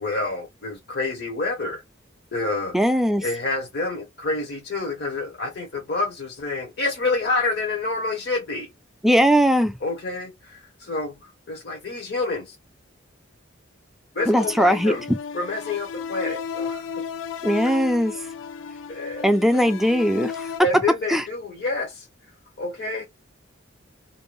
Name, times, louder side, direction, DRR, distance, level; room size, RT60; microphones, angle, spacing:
voice 1, 0.0-1.8 2.3-2.8 3.2-8.7 9.8-12.5 14.1-15.0 15.3-17.0 17.6-17.8 18.9-19.3 20.6-22.1 22.6-23.1, left 3 dB, 55° left, 0.7 m, -28 dB
voice 2, 2.7-3.2 9.0-9.7 14.3-14.9 17.4-18.1 19.2-20.5 21.1-21.2, equal, ahead, 0.3 m, -19 dB
sound 1, 14.2-20.6, left 6 dB, 75° left, 0.3 m, -34 dB
2.6 x 2.1 x 3.0 m
head